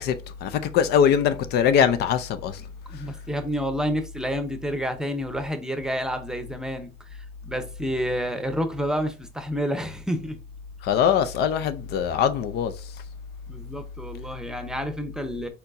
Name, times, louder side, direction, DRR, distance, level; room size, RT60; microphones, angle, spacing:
voice 1, 0.0-2.7 2.9-3.0 10.8-12.9, left 8 dB, 70° left, 0.5 m, -22 dB
voice 2, 2.9-10.4 13.5-15.5, equal, 5° right, 0.8 m, -29 dB
4.4 x 4.1 x 2.6 m
cardioid pair, 110°, 17 cm